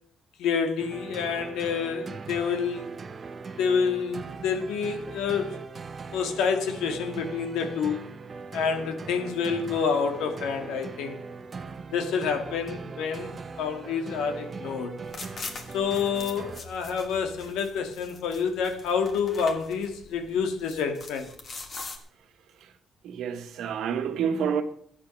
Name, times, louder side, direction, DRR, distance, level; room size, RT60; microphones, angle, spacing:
voice 1, 0.4-2.9 3.6-5.6 6.1-8.0 8.5-11.2 11.9-13.3 13.6-14.9 15.7-21.3, left 6 dB, 90° left, 1.9 m, -28 dB
sound 1, 0.8-16.6, right 4 dB, 40° right, 1.0 m, -40 dB
sound 2, 15.0-22.0, left 3 dB, 45° left, 2.5 m, -43 dB
voice 2, 23.0-24.6, right 7 dB, 80° right, 1.4 m, -28 dB
13.0 x 9.8 x 6.4 m
cardioid pair, 90°, 0 cm